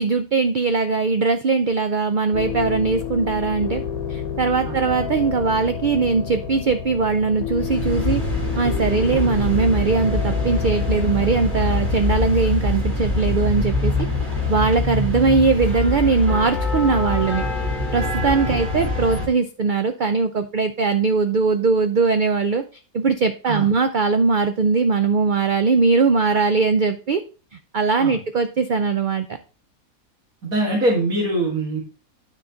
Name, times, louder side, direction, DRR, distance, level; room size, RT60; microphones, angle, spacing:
voice 1, 0.0-3.8 4.1-8.2 8.6-13.9 14.5-17.5 17.9-22.6 22.9-27.2 27.7-29.3, right 4 dB, 60° right, 8 dB, 0.5 m, -20 dB
sound 1, 2.3-12.4, left 7 dB, 80° left, 1.3 m, -30 dB
sound 2, 7.6-19.3, left 2 dB, 35° right, 2.9 m, -24 dB
voice 2, 30.4-31.8, right 1 dB, 80° right, -4 dB, 2.7 m, -23 dB
9.6 x 4.9 x 3.8 m, 0.34 s
omnidirectional pair, 1.5 m